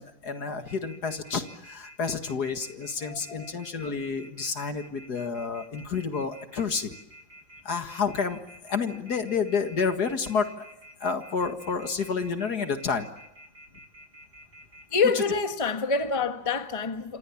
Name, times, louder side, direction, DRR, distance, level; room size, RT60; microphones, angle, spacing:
voice 1, 0.0-6.9 7.7-10.6 11.0-13.1, left 5 dB, 55° left, 2.3 m, -30 dB
Telephone, 0.7-15.0, right 1 dB, 65° right, 8.6 m, -50 dB
voice 2, 3.0-3.5 14.9-17.2, left 5 dB, 20° left, 1.5 m, -27 dB
29.0 x 26.5 x 7.2 m
omnidirectional pair, 2.0 m